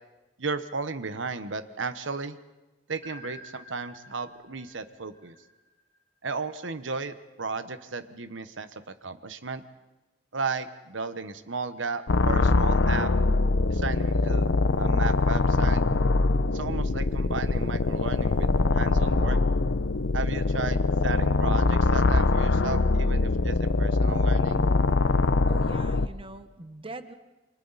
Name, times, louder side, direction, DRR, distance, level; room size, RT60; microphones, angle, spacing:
voice 1, 0.4-2.4 2.9-5.3 6.2-8.7 9.0-9.6 10.3-13.1 13.7-14.5 14.8-15.8 16.5-19.4 20.1-24.7, right 4 dB, 85° right, 11 dB, 1.1 m, -34 dB
sound 1, 3.0-6.0, left 1 dB, 50° right, 5.8 m, -49 dB
sound 2, 12.1-26.1, left 3 dB, 75° left, 0.8 m, -23 dB
voice 2, 25.5-27.1, right 2 dB, 30° right, 10 dB, 1.1 m, -42 dB
29.0 x 24.5 x 4.1 m, 1.1 s
head